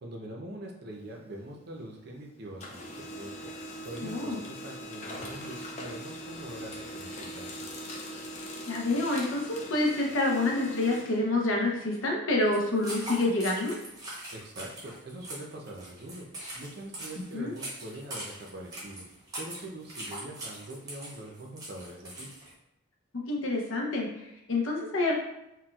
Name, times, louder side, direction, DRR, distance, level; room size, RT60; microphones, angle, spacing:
voice 1, 0.0-2.9 3.2-3.5 3.8-7.6 14.3-16.3 16.5-19.1 19.4-22.3, right 1 dB, 50° right, 0 dB, 0.5 m, -43 dB
Printer, 0.9-2.2 2.5-12.0, equal, 30° left, 0.4 m, -41 dB
voice 2, 4.0-4.4 8.7-13.7 17.3-17.5 23.1-25.1, left 2 dB, 70° left, 0 dB, 0.7 m, -28 dB
sound 1, 12.5-22.5, right 1 dB, 15° right, 0.7 m, -42 dB
4.1 x 2.2 x 2.3 m, 0.87 s
head